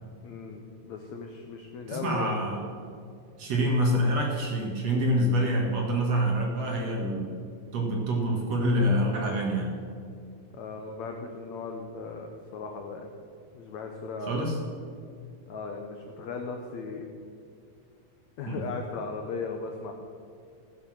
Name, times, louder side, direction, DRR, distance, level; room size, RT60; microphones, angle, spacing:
voice 1, 0.2-2.4 10.5-13.1 13.5-14.5 15.5-17.1 18.4-19.9, left 4 dB, 80° left, 3 dB, 1.6 m, -37 dB
voice 2, 1.9-2.6 3.4-7.3 7.7-9.7 14.3-14.6 18.5-18.6, equal, 55° right, 0 dB, 2.1 m, -26 dB
15.5 x 8.2 x 6.4 m, 2.4 s
omnidirectional pair, 4.4 m